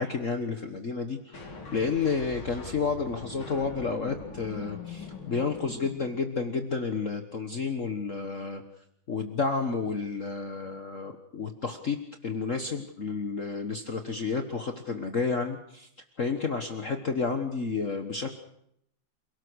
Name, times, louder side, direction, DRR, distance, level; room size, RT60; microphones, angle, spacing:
voice 1, 0.0-1.4 1.7-8.6 9.1-12.0 12.2-15.9 16.2-18.3, left 4 dB, 40° left, 6 dB, 1.6 m, -31 dB
sound 1, 1.3-6.5, left 3 dB, 75° left, 4.3 m, -42 dB
28.0 x 18.5 x 6.4 m, 0.72 s
omnidirectional pair, 2.2 m